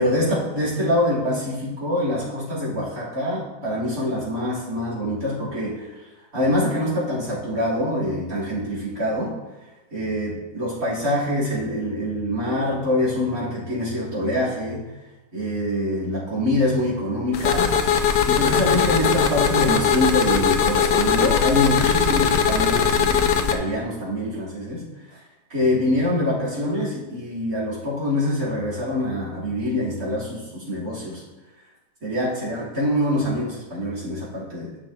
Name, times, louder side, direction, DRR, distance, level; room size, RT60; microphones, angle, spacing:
voice 1, 0.0-5.9 6.3-9.3 9.9-14.8 15.3-17.7 18.3-24.8 25.1-25.2 25.5-31.2 32.0-34.7, left 1 dB, 60° right, -7 dB, 3.9 m, -25 dB
sound 1, 17.3-23.5, left 7 dB, 85° left, 1.3 m, -20 dB
13.5 x 6.1 x 2.9 m, 1.1 s
omnidirectional pair, 1.8 m